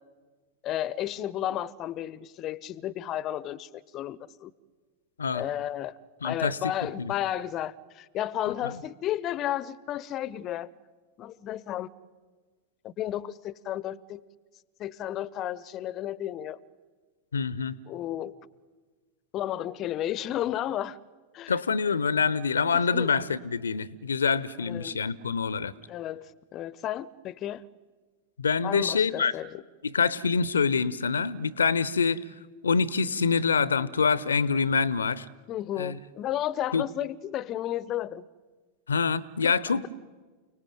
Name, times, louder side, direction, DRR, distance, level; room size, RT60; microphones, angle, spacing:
voice 1, 0.6-4.5 5.3-6.0 6.2-10.7 11.2-11.9 12.8-14.2 14.8-16.6 17.9-18.3 19.3-21.0 21.3-21.6 22.7-23.1 24.6-25.0 25.9-27.7 28.6-29.6 35.5-38.3 39.4-39.5, left 12 dB, 35° left, 0.8 m, -33 dB
voice 2, 6.2-6.6 7.0-7.1 8.6-8.8 17.3-17.8 21.5-25.7 28.4-29.3 29.9-32.2 32.6-35.3 35.8-36.0 36.7-36.8 38.9-39.9, left 5 dB, 70° left, 0.8 m, -26 dB
29.5 x 19.0 x 9.1 m
figure-of-eight pair, 90°, 0 cm